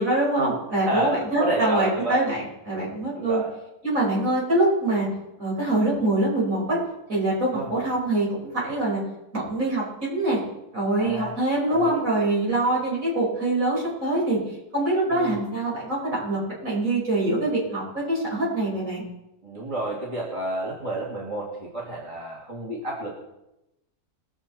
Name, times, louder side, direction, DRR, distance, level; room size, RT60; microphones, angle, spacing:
voice 1, 0.0-3.4 3.8-5.1 5.4-6.8 7.1-9.0 9.3-10.4 10.7-14.4 14.7-19.1, right 2 dB, 55° right, -5 dB, 5.6 m, -24 dB
voice 2, 0.7-2.2 3.1-3.5 7.5-7.7 11.0-11.3 11.7-12.0 15.1-15.4 19.4-23.2, right 1 dB, 20° right, -4 dB, 2.5 m, -30 dB
22.0 x 7.3 x 4.4 m, 0.90 s
omnidirectional pair, 1.6 m